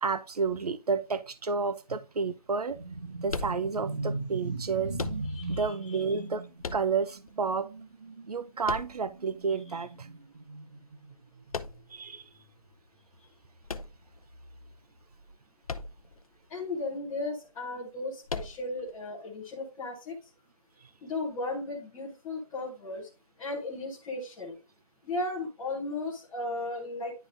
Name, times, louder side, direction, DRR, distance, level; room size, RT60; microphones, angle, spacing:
voice 1, 0.0-2.8 3.2-5.0 5.5-6.5 6.7-7.7 8.3-10.1 11.9-12.3, right 5 dB, 70° right, 0.7 m, -30 dB
sound 1, 2.7-12.7 12.9-13.2 14.0-15.0, right 2 dB, 45° right, 1.1 m, -40 dB
sound 2, 3.3-4.1 4.9-5.6 6.6-7.3 8.6-9.4 11.5-12.1 13.6-14.5 15.6-16.2 16.5-16.6 18.3-18.9, left 4 dB, 60° left, 0.6 m, -37 dB
voice 2, 5.3-5.7 16.5-20.2 21.0-23.1 23.4-24.6 25.0-27.1, left 2 dB, 5° left, 0.8 m, -35 dB
10.5 x 3.8 x 2.5 m
figure-of-eight pair, 165°, 20 cm